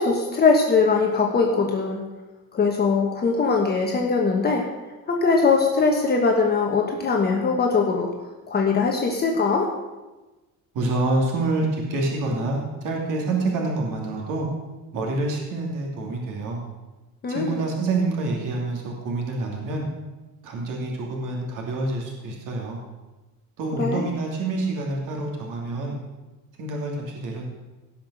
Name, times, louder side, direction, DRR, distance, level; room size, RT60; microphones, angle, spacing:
voice 1, 0.0-2.0 2.5-4.7 5.1-8.1 8.5-9.7 17.2-17.6 23.8-24.1, left 4 dB, 25° left, 0 dB, 1.3 m, -21 dB
voice 2, 10.7-14.5 14.9-16.6 17.3-19.9 20.4-22.8 23.6-25.9 26.6-27.5, right 2 dB, 60° right, 0 dB, 3.0 m, -27 dB
17.5 x 5.9 x 6.5 m, 1.1 s
cardioid pair, 160°, 36 cm